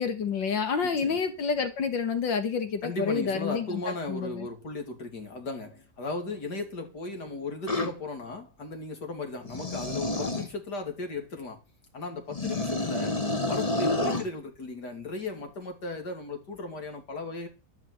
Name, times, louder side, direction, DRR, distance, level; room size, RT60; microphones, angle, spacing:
voice 1, 0.0-3.8 4.1-4.5, left 5 dB, 90° left, 2.3 m, -28 dB
voice 2, 0.8-1.2 2.8-11.6 11.9-17.5, left 3 dB, 65° left, 3.2 m, -36 dB
sound 1, 7.7-7.9 9.4-10.5 12.3-14.3, left 2 dB, 20° left, 1.4 m, -29 dB
12.5 x 6.8 x 7.9 m
omnidirectional pair, 1.9 m